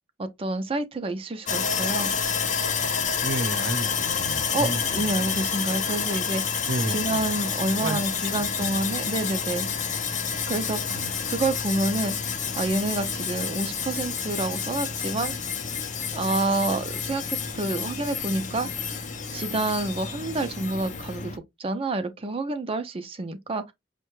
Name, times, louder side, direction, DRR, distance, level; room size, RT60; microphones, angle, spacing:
voice 1, 0.2-2.1 4.5-9.7 10.5-15.3 16.1-19.0 19.3-23.7, right 2 dB, 30° right, 0.4 m, -28 dB
Sawing, 1.5-21.4, left 6 dB, 40° left, 0.5 m, -29 dB
voice 2, 3.2-5.4 6.7-7.2 7.8-8.0 8.3-8.7 10.9-11.1, right 1 dB, 70° right, 0.8 m, -32 dB
5.6 x 2.1 x 3.0 m
head